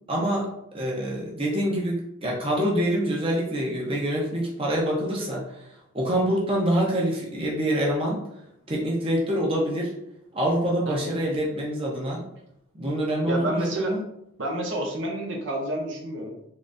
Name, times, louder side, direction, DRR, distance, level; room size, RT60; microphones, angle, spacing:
voice 1, 0.1-0.5 0.7-5.7 5.9-8.2 8.7-9.9 10.3-12.2 12.8-14.0, equal, 25° right, -3 dB, 0.7 m, -26 dB
voice 2, 13.3-13.9 14.4-16.4, right 1 dB, 65° right, 0 dB, 0.7 m, -29 dB
3.8 x 3.2 x 2.6 m, 0.78 s
head